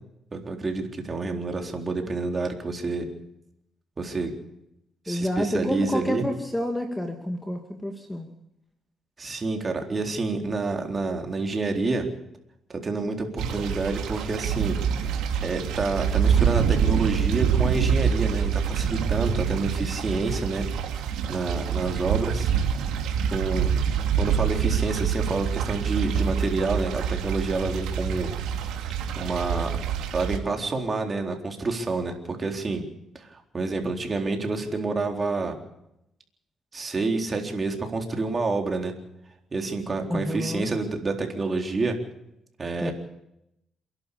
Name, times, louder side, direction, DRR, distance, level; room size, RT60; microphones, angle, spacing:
voice 1, 0.3-3.1 4.0-4.3 5.1-6.2 9.2-12.0 12.7-14.8 15.4-20.7 21.3-22.5 23.3-23.7 24.2-28.3 29.2-29.7 30.1-32.8 33.1-35.6 36.7-38.9 39.5-42.0 42.6-42.9, right 3 dB, 35° right, 3 dB, 3.9 m, -28 dB
voice 2, 5.1-8.3 40.1-40.7 42.8-42.9, left 1 dB, 10° left, 4 dB, 2.3 m, -29 dB
sound 1, 13.4-30.4, right 7 dB, 90° right, 2.7 m, -26 dB
28.0 x 11.5 x 8.5 m, 0.82 s
cardioid pair, 90°, 0 cm